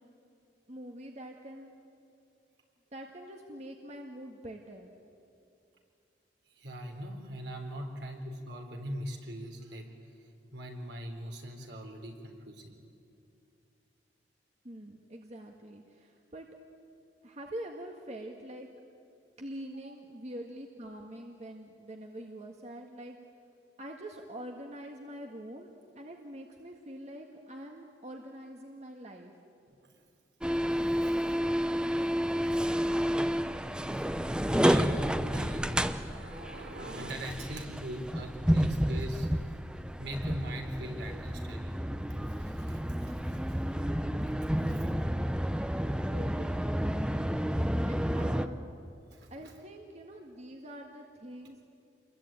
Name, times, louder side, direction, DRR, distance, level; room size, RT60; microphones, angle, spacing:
voice 1, 0.7-1.7 2.9-4.9 7.7-7.8 14.6-16.5 17.2-18.7 19.4-23.2 23.8-29.3 46.1-47.3 47.9-48.7 49.3-51.6, right 1 dB, 35° right, 2 dB, 1.7 m, -45 dB
voice 2, 6.6-9.9 10.5-12.8 19.8-19.9 29.7-29.9 30.9-31.2 32.4-32.7 33.9-34.1 34.5-39.3 40.0-41.9 42.3-43.6 44.6-44.9 49.1-49.3, equal, 70° right, 3 dB, 4.0 m, -41 dB
sound 1, 30.4-48.5, equal, 5° right, 0.7 m, -30 dB
28.5 x 22.0 x 9.1 m, 2.6 s
head